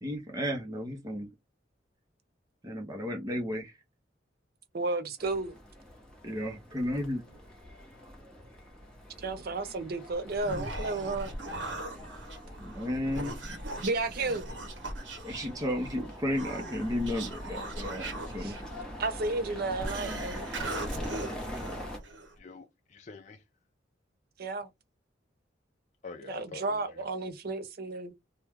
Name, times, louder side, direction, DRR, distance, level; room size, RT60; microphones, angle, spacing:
voice 1, 0.0-1.3 2.6-3.7 6.2-7.2 12.6-13.4 15.2-18.5, left 1 dB, 20° right, 0.7 m, -33 dB
voice 2, 4.7-5.5 9.2-11.3 13.8-14.5 18.4-18.5 19.0-20.5 24.4-24.7 26.2-28.1, right 3 dB, 55° right, 0.6 m, -32 dB
sound 1, 5.2-22.0, equal, 5° left, 0.9 m, -44 dB
Human voice, 10.1-22.4, right 2 dB, 80° right, 1.0 m, -40 dB
voice 3, 22.4-23.4 26.0-27.0, left 4 dB, 40° left, 0.4 m, -46 dB
3.0 x 2.2 x 3.5 m
head